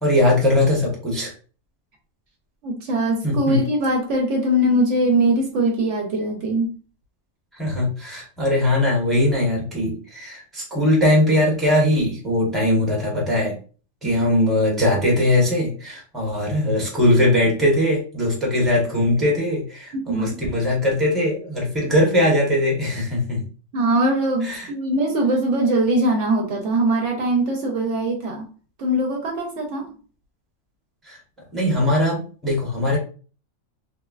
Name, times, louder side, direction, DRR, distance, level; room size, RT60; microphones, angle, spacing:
voice 1, 0.0-1.3 3.2-3.6 7.5-13.5 14.0-23.4 24.4-24.7 31.1-31.2 31.5-33.0, left 1 dB, ahead, -2 dB, 0.8 m, -20 dB
voice 2, 2.6-6.7 20.1-20.4 23.7-28.5 28.8-29.9, right 1 dB, 70° right, 2 dB, 0.8 m, -21 dB
3.2 x 2.1 x 2.3 m, 0.37 s
omnidirectional pair, 1.4 m